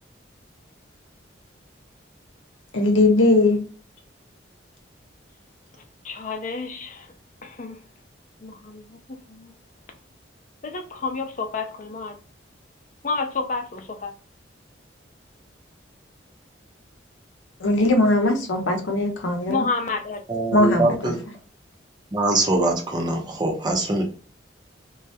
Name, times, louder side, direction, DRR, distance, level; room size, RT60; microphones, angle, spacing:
voice 1, 2.7-3.6 17.6-19.6 20.5-21.0, left 2 dB, 85° left, 0.7 m, -19 dB
voice 2, 6.0-7.1 7.4-7.8 8.4-9.5 10.6-12.2 13.0-14.1 19.5-20.2, left 4 dB, 40° left, 0.4 m, -30 dB
voice 3, 20.3-21.2 22.1-24.0, right 2 dB, 25° right, 0.5 m, -23 dB
2.3 x 2.0 x 2.7 m
head